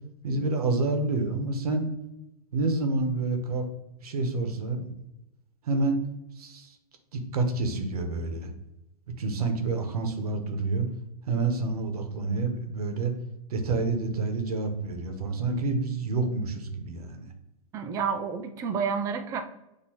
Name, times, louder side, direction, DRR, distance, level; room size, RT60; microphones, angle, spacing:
voice 1, 0.2-1.9 2.5-3.7 4.0-4.9 5.6-6.0 6.4-6.8 7.1-8.5 9.2-10.9 11.2-13.1 13.5-17.3, right 3 dB, 85° right, 5 dB, 0.9 m, -28 dB
voice 2, 17.7-19.4, right 6 dB, 15° right, 6 dB, 0.3 m, -29 dB
6.3 x 2.7 x 2.8 m, 0.90 s
hypercardioid pair, 145°, 19 cm